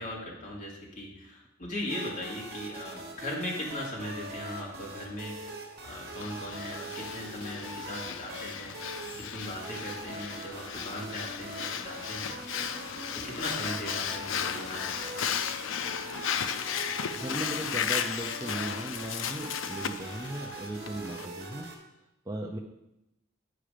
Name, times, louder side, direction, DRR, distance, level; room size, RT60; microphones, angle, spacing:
voice 1, 0.0-5.5 5.8-8.8 9.2-12.3 13.1-15.2, left 1 dB, 40° left, -3 dB, 2.1 m, -38 dB
sound 1, 1.9-21.8, right 2 dB, 55° right, 1.3 m, -43 dB
Breathing, 6.2-21.3, left 8 dB, 70° left, 0.5 m, -35 dB
voice 2, 17.1-21.7 22.3-22.6, right 1 dB, 15° right, 1 dB, 0.5 m, -37 dB
8.8 x 4.9 x 5.0 m, 0.89 s
head